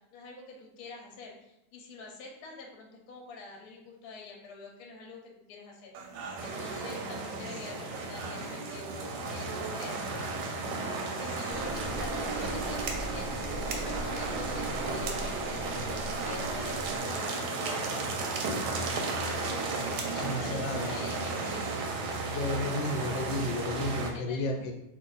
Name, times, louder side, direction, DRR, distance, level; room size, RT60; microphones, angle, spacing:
voice 1, 0.0-13.5 13.8-18.3 20.1-21.9 24.1-24.6, left 4 dB, 65° left, 0 dB, 1.1 m, -46 dB
sound 1, 5.9-22.0, right 4 dB, 85° right, 1.3 m, -44 dB
sound 2, 6.4-24.1, right 3 dB, 70° right, 1.0 m, -34 dB
Engine, 11.5-17.0, right 1 dB, 50° right, 0.5 m, -39 dB
voice 2, 20.2-21.0 22.3-24.7, left 2 dB, 85° left, 2 dB, 1.3 m, -32 dB
2.9 x 2.5 x 3.9 m, 0.87 s
omnidirectional pair, 2.0 m